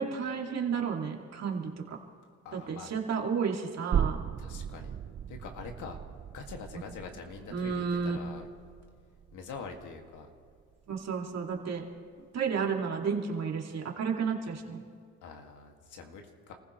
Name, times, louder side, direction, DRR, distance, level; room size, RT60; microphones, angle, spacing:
voice 1, 0.0-2.0 2.5-4.2 7.5-8.2 10.9-11.8 12.3-14.8, right 6 dB, 60° right, 0 dB, 2.4 m, -32 dB
voice 2, 2.4-2.9 4.4-4.9 5.3-6.0 6.3-8.5 9.3-10.3 15.2-16.5, left 5 dB, 80° left, 3 dB, 2.1 m, -44 dB
sound 1, 3.9-11.2 11.6-11.7, right 8 dB, 35° right, 0.5 m, -37 dB
28.5 x 15.5 x 3.2 m, 2.1 s
cardioid pair, 90°, 30 cm